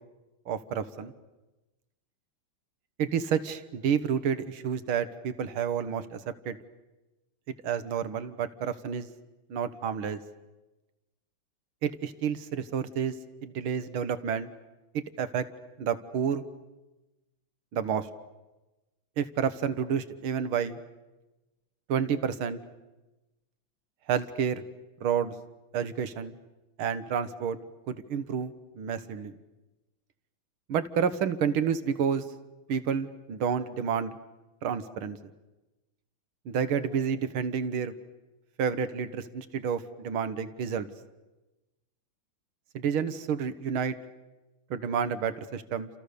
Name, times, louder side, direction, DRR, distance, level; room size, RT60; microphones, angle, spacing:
voice 1, 0.5-1.1 3.0-6.2 6.5-6.6 7.6-9.1 9.5-10.2 11.8-13.2 13.4-14.5 14.9-15.5 15.8-16.4 17.7-18.1 19.2-20.8 21.9-22.6 24.1-24.6 25.0-25.3 25.7-26.4 26.8-27.6 27.9-29.3 30.7-32.2 32.7-34.1 34.6-35.2 36.5-37.9 38.6-40.9 42.7-44.0 44.7-45.9, right 7 dB, 75° right, 12 dB, 2.1 m, -29 dB
30.0 x 27.5 x 6.8 m, 1.1 s
omnidirectional pair, 2.4 m